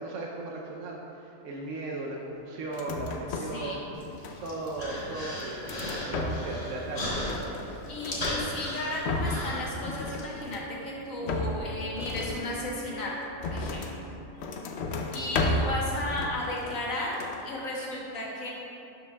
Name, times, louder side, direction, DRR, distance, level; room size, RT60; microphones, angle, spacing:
voice 1, 0.0-3.9 4.4-7.8, right 2 dB, 70° right, -2 dB, 1.0 m, -37 dB
sound 1, 2.7-3.6 3.9-4.7 5.2-6.7 6.9-8.4 8.8-9.5 9.8-10.8 11.2-14.0 14.4-15.8 16.1-16.9 17.1-17.4, left 2 dB, 65° left, 0.8 m, -33 dB
voice 2, 3.5-3.8 7.9-13.1 13.5-13.9 15.1-17.1 17.4-18.5, left 1 dB, 80° left, -4 dB, 1.6 m, -34 dB
Human voice, 3.9-10.2, left 1 dB, 30° left, 1.2 m, -36 dB
sound 2, 9.9-15.7, right 1 dB, 50° left, 0.3 m, -46 dB
12.0 x 5.1 x 2.3 m, 2.7 s
omnidirectional pair, 1.4 m